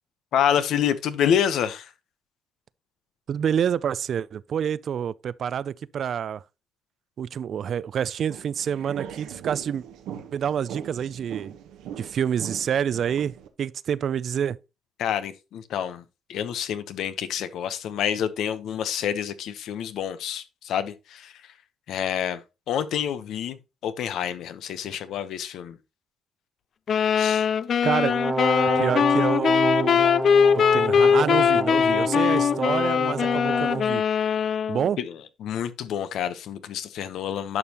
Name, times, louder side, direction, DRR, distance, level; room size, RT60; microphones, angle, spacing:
voice 1, 0.3-1.9 15.0-16.0 16.3-21.3 21.9-22.4 22.7-25.8 27.2-27.5 35.0-35.1 35.4-37.6, left 9 dB, 80° left, 0.9 m, -28 dB
voice 2, 3.3-6.4 7.2-9.8 10.3-11.5 12.0-14.6 27.8-28.2 28.7-30.0 30.5-34.0 34.7-35.0, right 8 dB, 60° right, 0.4 m, -27 dB
sound 1, 8.2-13.5, right 9 dB, 90° right, 1.1 m, -40 dB
sound 2, 26.9-34.9, left 7 dB, 55° left, 0.4 m, -21 dB
Brass instrument, 28.1-33.9, right 3 dB, 25° right, 1.1 m, -30 dB
11.0 x 5.4 x 2.9 m
cardioid pair, 90°, 0 cm